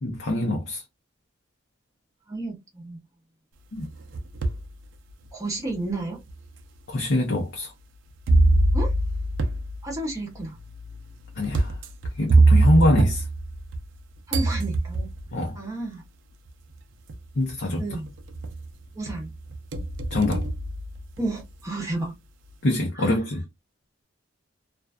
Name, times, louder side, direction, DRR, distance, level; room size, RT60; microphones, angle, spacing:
voice 1, 0.0-0.8 3.7-3.9 6.9-7.7 11.4-11.8 12.2-13.2 15.3-15.6 17.4-17.8 20.1-20.5 22.6-23.4, left 1 dB, 60° left, 0.7 m, -24 dB
voice 2, 2.3-3.0 5.3-6.2 8.7-8.9 9.8-10.6 14.3-15.1 15.5-16.0 17.8-18.1 18.9-19.3 21.2-22.1 22.9-23.2, right 2 dB, 15° right, 0.7 m, -32 dB
sound 1, 3.8-4.7 5.3-5.4 6.3-6.4 8.3-14.0 14.3-15.3 16.5-16.6 17.1-17.5 17.9-18.7 19.1-21.4, right 2 dB, 75° right, 0.5 m, -23 dB
2.5 x 2.3 x 2.3 m
head